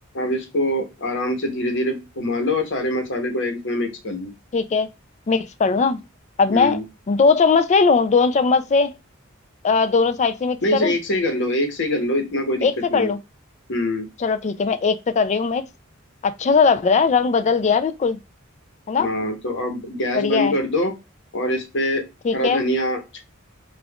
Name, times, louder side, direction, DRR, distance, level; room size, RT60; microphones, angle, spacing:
voice 1, 0.1-4.3 6.5-6.8 10.6-13.1 13.7-14.1 19.0-20.9 21.3-22.0 22.3-23.2, left 1 dB, 60° left, 1.0 m, -24 dB
voice 2, 4.5-4.9 5.3-6.0 6.4-6.8 7.1-8.9 9.6-10.9 12.6-13.2 14.2-15.7 16.2-18.2 18.9-19.1 20.2-20.5 22.2-22.6, left 5 dB, 35° left, 0.4 m, -19 dB
5.2 x 2.4 x 2.3 m
head